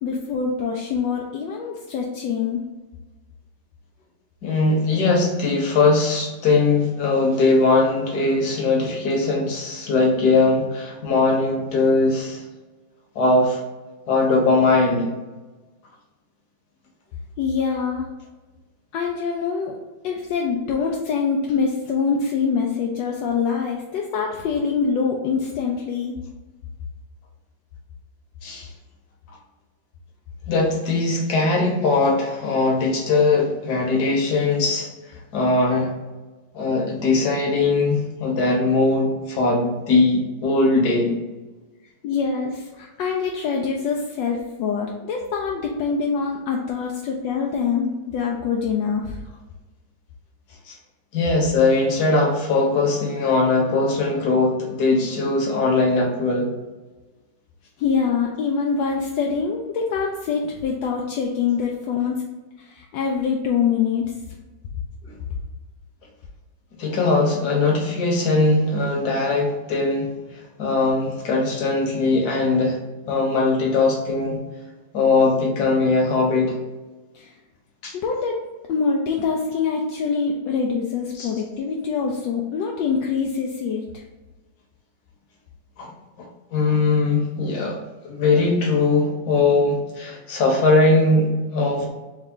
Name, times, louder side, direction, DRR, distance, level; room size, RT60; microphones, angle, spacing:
voice 1, 0.0-2.6 17.4-18.1 18.9-19.8 20.0-26.2 42.0-49.2 57.8-62.2 62.6-64.1 77.1-77.3 77.9-78.3 78.7-84.0, left 5 dB, 80° left, 0 dB, 1.2 m, -24 dB
voice 2, 4.4-12.4 13.1-13.6 14.1-15.1 28.4-28.7 30.5-34.9 35.3-35.9 36.5-41.1 50.7-50.8 51.1-56.5 65.0-65.1 66.8-70.1 70.6-72.8 73.1-74.4 74.9-76.6 77.8-77.9 81.2-81.3 85.8-85.9 86.5-87.8 88.0-91.9, left 3 dB, 60° left, -1 dB, 1.5 m, -20 dB
3.6 x 3.2 x 3.7 m, 1.2 s
omnidirectional pair, 2.0 m